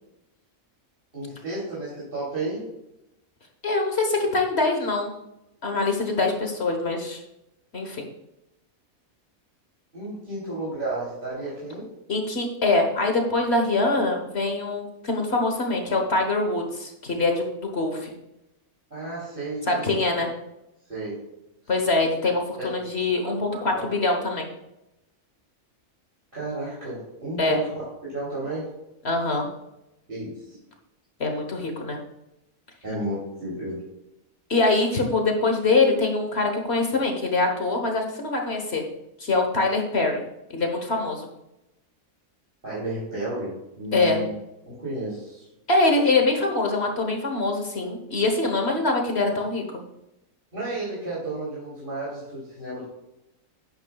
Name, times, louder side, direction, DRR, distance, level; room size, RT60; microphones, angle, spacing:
voice 1, 1.1-2.6 9.9-11.9 18.9-19.8 20.2-20.3 20.9-21.2 22.6-22.7 23.5-23.9 26.3-27.8 28.1-28.7 30.1-30.6 32.8-33.8 42.6-44.3 44.7-45.5 50.5-52.8, right 2 dB, 40° right, -8 dB, 3.3 m, -32 dB
voice 2, 3.6-5.1 5.6-7.2 7.7-8.0 12.1-18.1 19.7-20.3 21.7-24.5 27.4-27.6 29.0-29.5 31.2-32.0 34.5-38.8 39.2-40.2 40.5-41.3 43.9-44.2 45.7-49.6, left 3 dB, 50° left, 3 dB, 1.4 m, -24 dB
11.0 x 8.9 x 2.3 m, 0.89 s
omnidirectional pair, 1.4 m